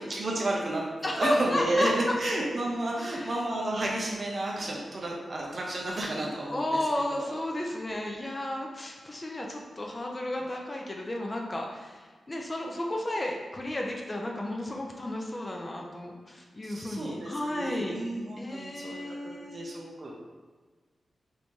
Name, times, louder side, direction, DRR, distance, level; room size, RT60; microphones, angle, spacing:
voice 1, 0.0-0.9 1.2-6.8 7.1-7.4 16.6-20.1, right 1 dB, 40° right, -2 dB, 0.4 m, -31 dB
voice 2, 1.0-2.1 3.0-3.4 6.5-18.0 18.4-19.6, left 1 dB, 25° left, 0 dB, 0.3 m, -33 dB
2.9 x 2.6 x 3.5 m, 1.4 s
wide cardioid pair, 140°, 0 cm